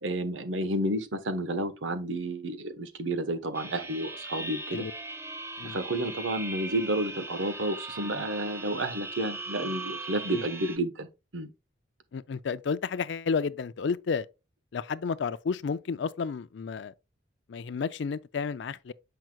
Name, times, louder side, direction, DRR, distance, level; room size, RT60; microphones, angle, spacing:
voice 1, 0.0-4.8 5.6-11.1 11.3-11.5, right 1 dB, 85° right, 1.2 m, -31 dB
sound 1, 3.5-10.8, right 2 dB, 15° right, 0.6 m, -39 dB
voice 2, 12.1-14.3 14.7-16.9 17.5-18.9, left 5 dB, 65° left, 0.4 m, -31 dB
7.6 x 5.8 x 2.3 m
head